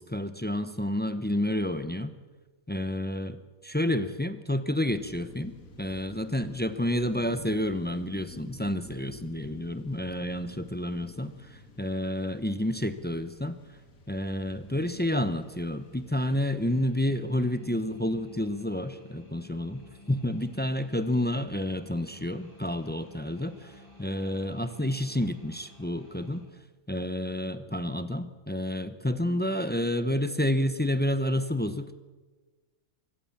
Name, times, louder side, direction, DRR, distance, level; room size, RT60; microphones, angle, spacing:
voice 1, 0.0-2.2 2.7-3.4 3.6-13.6 14.1-23.7 24.0-26.5 26.9-31.9, left 1 dB, 10° left, 11 dB, 0.4 m, -30 dB
sound 1, 4.8-16.9, left 3 dB, 60° left, 2.3 m, -51 dB
sound 2, 14.1-26.4, left 3 dB, 70° right, 6.6 m, -52 dB
24.0 x 16.0 x 7.2 m, 1.3 s
omnidirectional pair, 1.6 m